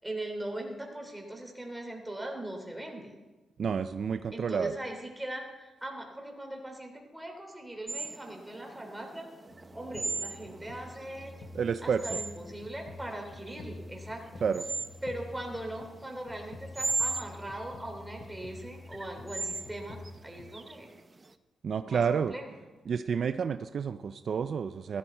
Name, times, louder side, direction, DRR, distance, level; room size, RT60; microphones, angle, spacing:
voice 1, 0.0-3.1 4.3-9.3 9.7-11.3 11.8-14.3 15.0-20.9 21.8-22.6, right 1 dB, 10° right, 2 dB, 3.4 m, -40 dB
voice 2, 3.6-4.7 11.5-12.2 14.4-14.6 21.6-22.3 22.9-25.0, right 6 dB, 55° right, 10 dB, 0.5 m, -30 dB
sound 1, 7.9-21.3, right 3 dB, 25° right, 0.7 m, -38 dB
sound 2, 9.5-20.5, left 2 dB, 55° left, 1.3 m, -48 dB
15.5 x 13.5 x 4.5 m, 1.2 s
cardioid pair, 90°, 0 cm